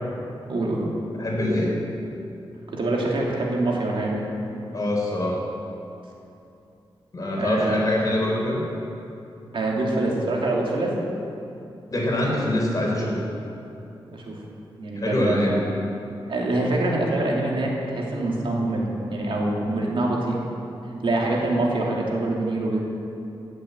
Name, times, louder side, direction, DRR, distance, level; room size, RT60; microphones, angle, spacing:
voice 1, 0.5-0.9 2.7-4.3 7.4-7.9 9.5-10.9 14.1-14.4 14.8-15.6 16.3-20.4 21.0-22.8, right 2 dB, 65° right, -2 dB, 2.7 m, -25 dB
voice 2, 1.1-1.8 4.7-5.4 7.1-8.6 11.9-13.2 15.0-15.6, left 1 dB, 40° left, -2 dB, 3.8 m, -24 dB
17.0 x 7.5 x 8.0 m, 2.7 s
wide cardioid pair, 115°, 9 cm